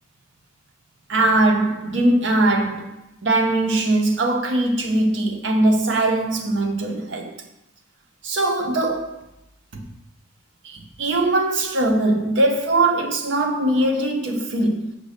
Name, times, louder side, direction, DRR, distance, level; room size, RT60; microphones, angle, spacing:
voice 1, 1.1-2.9 3.2-7.4 8.2-9.2 9.7-9.8 10.6-14.9, right 2 dB, 60° right, 2 dB, 0.6 m, -21 dB
5.2 x 2.1 x 4.8 m, 0.86 s
head